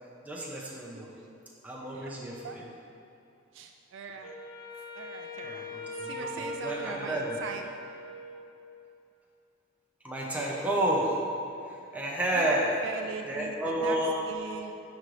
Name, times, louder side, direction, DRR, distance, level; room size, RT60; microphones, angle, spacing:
voice 1, 0.2-1.1 1.6-2.7 5.4-7.4 10.0-11.1 11.9-12.7 13.3-14.2, right 1 dB, 5° right, -4 dB, 0.8 m, -30 dB
voice 2, 3.5-4.4 4.9-5.7 6.0-7.7 12.3-14.7, right 5 dB, 60° right, 4 dB, 0.3 m, -41 dB
Wind instrument woodwind instrument, 4.2-8.6, left 2 dB, 85° left, 1.3 m, -41 dB
10.5 x 3.9 x 3.3 m, 2.7 s
head